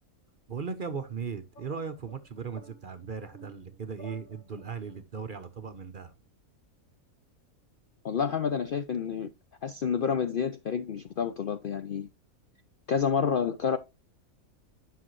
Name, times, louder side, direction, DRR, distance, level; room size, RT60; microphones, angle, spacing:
voice 1, 0.5-6.1, right 6 dB, 45° right, 0.8 m, -37 dB
sound 1, 1.5-5.0, right 2 dB, 40° left, 1.7 m, -54 dB
voice 2, 8.0-9.3 9.6-12.1 12.9-13.8, left 7 dB, 60° left, 0.5 m, -29 dB
9.9 x 5.7 x 3.1 m
omnidirectional pair, 1.5 m